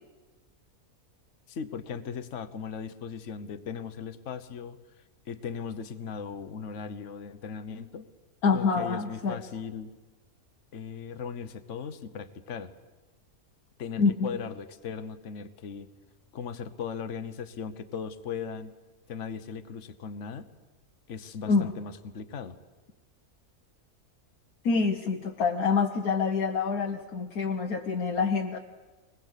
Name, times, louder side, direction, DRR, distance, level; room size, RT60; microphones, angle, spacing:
voice 1, 1.5-4.8 5.3-8.1 8.5-9.9 10.7-12.7 13.8-15.9 16.3-18.7 19.1-20.4 21.1-22.6, left 6 dB, 55° left, 12 dB, 1.3 m, -38 dB
voice 2, 8.4-9.4 14.0-14.3 21.5-21.7 24.6-28.6, left 5 dB, 80° left, 3 dB, 1.6 m, -26 dB
23.5 x 20.5 x 8.3 m, 1.2 s
omnidirectional pair, 1.5 m